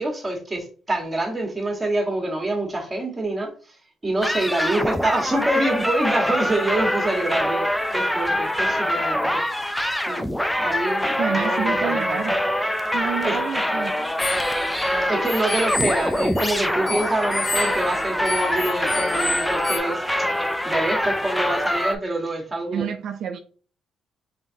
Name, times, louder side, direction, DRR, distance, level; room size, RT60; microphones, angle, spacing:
voice 1, 0.0-3.8 4.0-9.6 10.1-10.3 10.6-12.2 13.2-13.4 14.3-14.4 15.1-20.3 20.6-22.9, right 2 dB, 20° right, 1.4 m, -26 dB
sound 1, 4.2-22.0, equal, 5° left, 0.4 m, -24 dB
voice 2, 11.2-12.4 12.9-14.0 22.7-23.4, right 8 dB, 70° right, 0.4 m, -28 dB
sound 2, 14.2-19.8, left 3 dB, 45° left, 0.9 m, -31 dB
3.7 x 3.5 x 2.7 m
cardioid pair, 90°, 0 cm